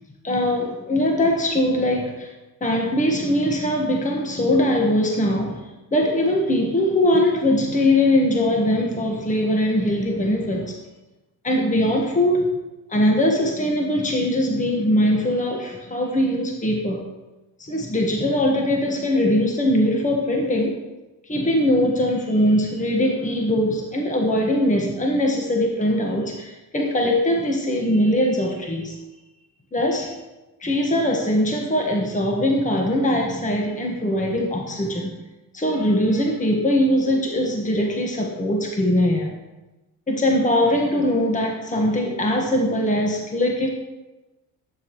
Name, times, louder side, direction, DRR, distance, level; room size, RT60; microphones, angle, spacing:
voice 1, 0.2-2.3 2.6-5.6 5.9-10.7 11.4-12.5 12.9-17.0 17.6-20.7 21.3-29.0 29.7-30.1 30.6-35.1 35.5-39.3 40.1-43.7, left 1 dB, 20° left, 0 dB, 1.5 m, -21 dB
10.5 x 7.2 x 3.2 m, 1.1 s
supercardioid pair, 70°, 38 cm